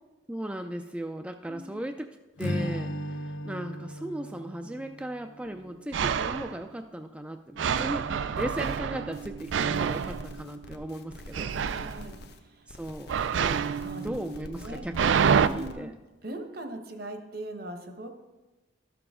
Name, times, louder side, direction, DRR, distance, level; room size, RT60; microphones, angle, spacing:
voice 1, 0.3-2.1 2.4-8.0 8.4-11.5 12.7-13.1 13.4-13.6 14.0-15.9, right 1 dB, 5° right, 6 dB, 0.3 m, -37 dB
voice 2, 1.4-1.8 7.6-8.3 11.6-12.7 13.8-14.1 14.6-14.8 15.3-15.9 16.2-18.1, right 1 dB, 55° right, 6 dB, 1.1 m, -40 dB
Strum, 2.4-6.8, equal, 85° left, 0.9 m, -37 dB
sound 1, 5.5-5.6 5.9-6.6 7.6-10.9 11.3-12.0 13.1-15.5, right 7 dB, 85° right, 0.4 m, -28 dB
sound 2, 8.4-8.8 9.1-12.4 12.7-15.7, left 1 dB, 60° left, 0.9 m, -45 dB
13.0 x 6.9 x 3.7 m, 1.1 s
head